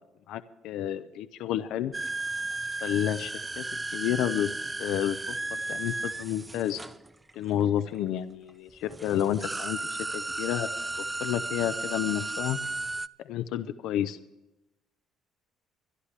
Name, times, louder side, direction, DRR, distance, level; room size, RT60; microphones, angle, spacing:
voice 1, 0.3-1.9 2.8-4.5 4.8-6.8 7.3-10.7 11.2-12.6 13.2-14.2, left 11 dB, 75° left, 10 dB, 0.7 m, -30 dB
sound 1, 1.9-7.6 8.5-8.6 8.9-13.1, right 2 dB, 15° right, 0.4 m, -34 dB
24.0 x 11.5 x 3.3 m, 0.96 s
cardioid pair, 105°, 0 cm